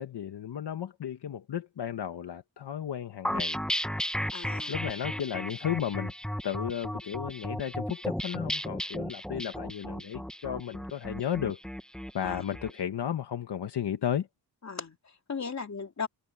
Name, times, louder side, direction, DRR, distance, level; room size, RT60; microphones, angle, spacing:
voice 1, 0.0-3.6 4.7-6.1 6.4-11.6 12.1-14.3, left 9 dB, 75° left, 1.3 m, -34 dB
sound 1, 3.2-12.7, equal, ahead, 1.2 m, -34 dB
voice 2, 4.3-4.9 12.2-12.4 14.6-16.1, left 5 dB, 40° left, 3.2 m, -37 dB
wide cardioid pair, 135°, 41 cm